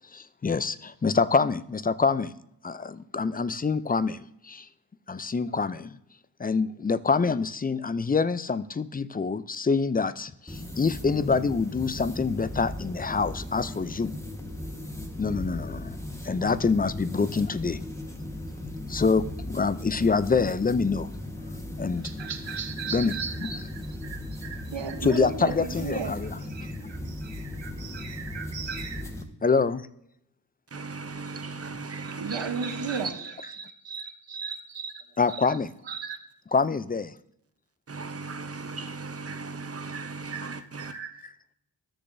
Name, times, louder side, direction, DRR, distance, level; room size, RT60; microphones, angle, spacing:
voice 1, 0.1-2.3 2.6-4.7 5.1-6.0 6.4-14.2 15.2-16.0 16.2-17.8 18.9-21.1 21.8-22.1 22.9-23.1 23.4-23.5 25.0-26.3 29.4-29.9 35.2-35.7 36.5-37.1, left 4 dB, 20° left, 0.4 m, -26 dB
sound 1, 10.5-29.2, left 1 dB, 5° left, 1.3 m, -37 dB
voice 2, 22.0-29.0 32.0-35.6 35.8-36.2 39.6-41.3, right 5 dB, 80° right, 1.1 m, -37 dB
voice 3, 30.7-33.1 37.9-41.0, right 4 dB, 35° right, 0.7 m, -37 dB
13.5 x 6.6 x 2.6 m
cardioid pair, 45°, 43 cm